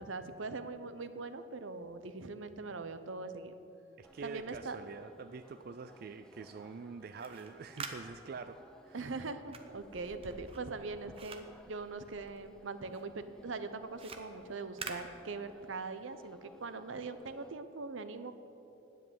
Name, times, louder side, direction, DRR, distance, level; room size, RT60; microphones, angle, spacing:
voice 1, 0.0-3.6 4.2-4.8 8.9-18.3, right 3 dB, 75° right, 10 dB, 0.8 m, -42 dB
sound 1, 4.0-17.5, equal, 5° left, 0.5 m, -59 dB
voice 2, 4.0-8.6 8.8-9.1, right 5 dB, 50° right, 9 dB, 0.3 m, -46 dB
sound 2, 7.0-12.6 12.9-15.8, right 4 dB, 30° right, 0.8 m, -48 dB
10.0 x 7.5 x 9.5 m, 2.9 s
head